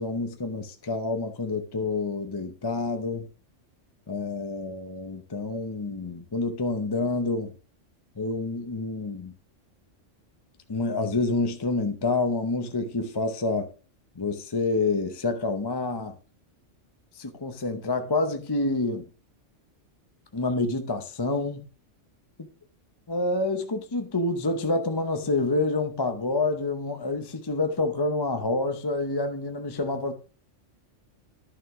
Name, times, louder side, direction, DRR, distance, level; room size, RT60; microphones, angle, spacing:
voice 1, 0.0-3.3 4.1-7.5 8.2-9.3 10.7-13.7 14.2-16.1 17.2-19.1 20.3-21.6 23.1-30.1, left 3 dB, 25° left, 0.7 m, -28 dB
11.5 x 6.3 x 3.6 m
omnidirectional pair, 1.3 m